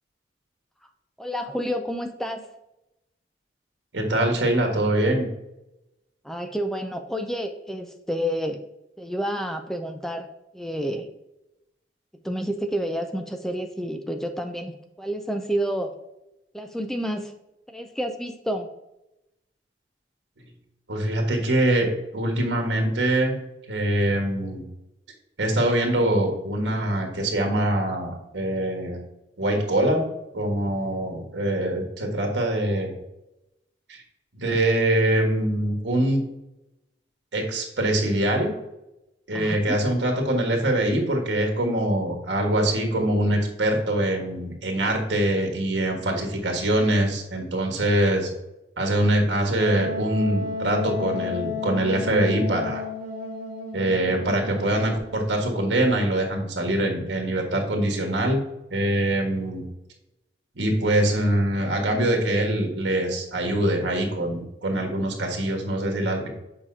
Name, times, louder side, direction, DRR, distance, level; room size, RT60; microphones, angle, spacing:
voice 1, 1.2-2.4 6.2-8.6 9.0-10.3 10.5-11.1 12.2-15.9 16.5-17.3 17.7-18.7 39.3-39.8, equal, ahead, 6 dB, 0.4 m, -29 dB
voice 2, 3.9-5.2 20.9-21.9 22.1-23.4 23.7-24.6 25.4-29.0 29.4-30.0 30.3-32.9 33.9-34.0 34.3-36.2 37.3-38.5 39.3-48.3 48.8-52.8 53.7-58.4 58.7-59.6 60.5-66.3, right 1 dB, 75° right, 2 dB, 1.5 m, -23 dB
Wind instrument woodwind instrument, 49.6-55.1, left 5 dB, 50° right, 1.5 m, -33 dB
7.3 x 4.9 x 2.7 m, 0.91 s
head